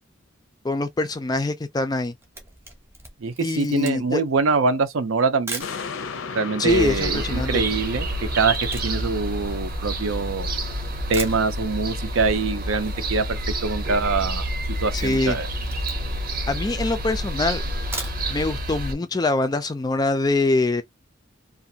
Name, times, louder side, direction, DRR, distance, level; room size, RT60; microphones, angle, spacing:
voice 1, 0.6-2.1 3.4-4.2 6.6-7.6 14.9-15.4 16.5-17.6 18.3-20.8, left 2 dB, 20° left, 0.3 m, -24 dB
Camera, 2.2-5.8 6.5-6.6 6.8-10.4 10.8-10.9 11.1-12.0 12.3-12.4 12.7-12.8 12.9-13.4 13.7-13.9 14.3-16.3 16.8-16.9 17.7-18.5 18.9-19.0 19.3-19.4, right 2 dB, 10° right, 0.7 m, -39 dB
voice 2, 3.2-5.7 6.3-8.6 8.8-10.5 11.1-14.5 14.8-15.5, right 4 dB, 85° right, 0.5 m, -24 dB
sound 1, 5.6-12.2 12.7-12.8, left 5 dB, 90° left, 0.6 m, -38 dB
sound 2, 6.7-18.9, equal, 45° right, 0.7 m, -28 dB
2.5 x 2.5 x 2.7 m
head